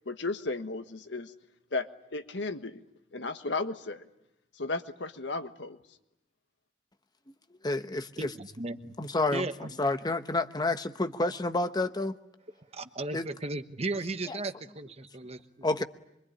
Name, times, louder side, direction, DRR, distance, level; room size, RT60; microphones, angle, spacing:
voice 1, 0.0-1.3 1.7-2.8 3.1-4.0 4.5-5.8, left 3 dB, 75° left, 1.5 m, -34 dB
voice 2, 7.6-8.3 9.0-12.2 13.1-13.3 14.3-14.4 15.6-15.8, left 2 dB, 25° left, 1.0 m, -29 dB
voice 3, 8.2-8.9 9.3-9.5 12.7-15.8, right 2 dB, 35° right, 1.2 m, -36 dB
24.5 x 23.5 x 10.0 m
head